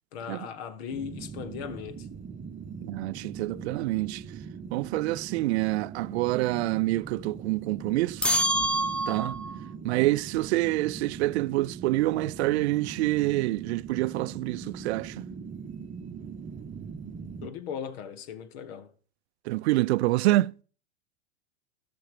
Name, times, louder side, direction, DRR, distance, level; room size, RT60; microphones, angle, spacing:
voice 1, 0.1-2.1 17.4-18.9, left 7 dB, 65° left, 1.7 m, -38 dB
sound 1, 0.9-17.5, right 6 dB, 25° right, 0.9 m, -41 dB
voice 2, 2.8-4.2 4.7-8.3 9.1-9.4 9.8-15.3 19.5-20.5, right 18 dB, 75° right, 0.5 m, -27 dB
sound 2, 8.2-9.6, equal, 5° left, 0.6 m, -26 dB
15.0 x 6.0 x 5.0 m
supercardioid pair, 120°, 33 cm